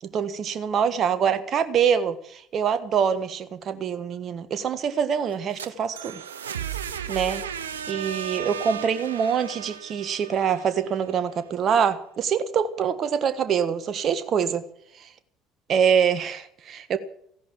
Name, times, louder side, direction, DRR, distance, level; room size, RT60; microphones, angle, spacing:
voice 1, 0.1-6.2 7.1-7.4 7.9-14.6 15.7-17.0, right 7 dB, 45° right, 12 dB, 1.5 m, -25 dB
sound 1, 5.3-11.2, right 8 dB, 80° right, 0.8 m, -35 dB
16.0 x 10.5 x 7.6 m, 0.67 s
figure-of-eight pair, 60°, 0 cm